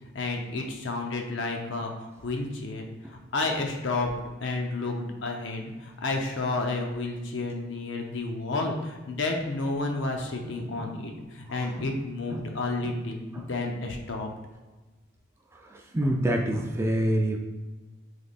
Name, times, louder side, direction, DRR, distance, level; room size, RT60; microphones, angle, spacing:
voice 1, 0.1-4.1 4.4-14.3, left 3 dB, 65° left, 2 dB, 0.6 m, -31 dB
voice 2, 11.5-11.9 12.3-12.4 13.3-13.5 15.6-17.4, right 1 dB, 15° right, 1 dB, 0.3 m, -27 dB
3.3 x 3.2 x 4.1 m, 1.2 s
head